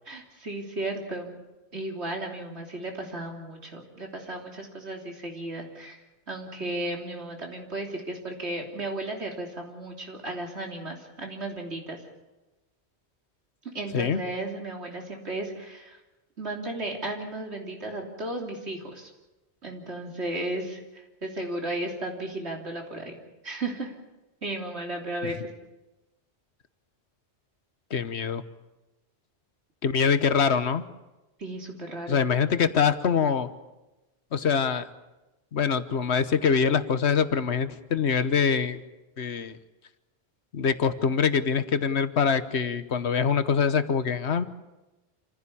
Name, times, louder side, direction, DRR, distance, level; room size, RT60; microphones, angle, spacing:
voice 1, 0.1-1.4 1.7-6.0 6.3-12.0 13.7-16.0 16.4-19.1 19.6-23.2 23.4-23.9 24.4-25.5 31.4-32.3, right 2 dB, 80° right, 1 dB, 3.7 m, -34 dB
voice 2, 27.9-28.4 29.8-30.8 32.1-33.5 34.3-34.9 35.5-38.8 39.2-39.6 40.5-44.4, left 6 dB, 80° left, 12 dB, 1.4 m, -24 dB
27.0 x 15.5 x 8.6 m, 1.1 s
omnidirectional pair, 1.1 m